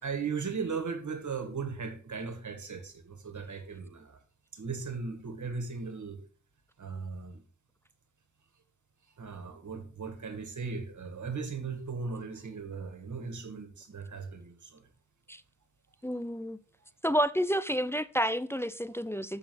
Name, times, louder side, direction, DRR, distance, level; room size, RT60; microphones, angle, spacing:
voice 1, 0.0-4.2 4.5-6.2 6.8-7.4 9.2-14.9, right 5 dB, 90° right, 1.8 m, -37 dB
voice 2, 16.0-16.6 17.0-19.4, equal, 10° left, 0.5 m, -30 dB
7.3 x 6.3 x 6.2 m
wide cardioid pair, 60°, 29 cm